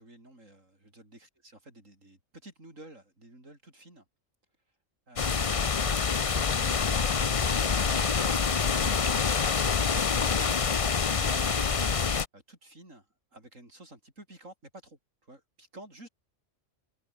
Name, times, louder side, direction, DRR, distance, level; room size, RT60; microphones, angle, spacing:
voice 1, 0.0-4.0 4.7-4.8 5.1-10.7 11.1-11.8 12.3-16.1, right 1 dB, 90° right, 7.9 m, -51 dB
sound 1, 5.2-12.3, left 5 dB, 35° left, 0.7 m, -26 dB
omnidirectional pair, 1.3 m